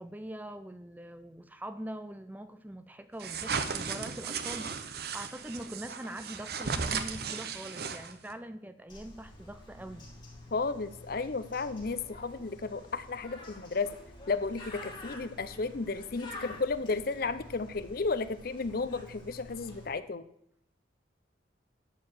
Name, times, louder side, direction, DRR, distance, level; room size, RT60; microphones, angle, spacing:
voice 1, 0.0-10.1, right 1 dB, 10° right, 10 dB, 0.5 m, -43 dB
sound 1, 3.2-8.3, right 5 dB, 55° right, 0.8 m, -35 dB
Bird, 8.9-19.9, left 1 dB, 25° left, 2.9 m, -48 dB
voice 2, 10.5-13.9 14.3-20.2, left 4 dB, 50° left, 13 dB, 0.6 m, -33 dB
12.0 x 4.6 x 7.8 m, 0.71 s
head